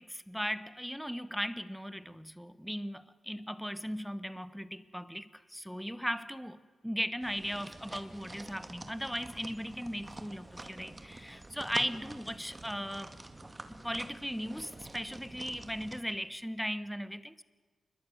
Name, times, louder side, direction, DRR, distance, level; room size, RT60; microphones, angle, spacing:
voice 1, 0.0-13.2 13.7-17.4, equal, ahead, 1.1 m, -37 dB
sound 1, 7.2-16.0, right 2 dB, 15° right, 2.4 m, -47 dB
29.0 x 21.5 x 9.4 m
wide cardioid pair, 115°, 0 cm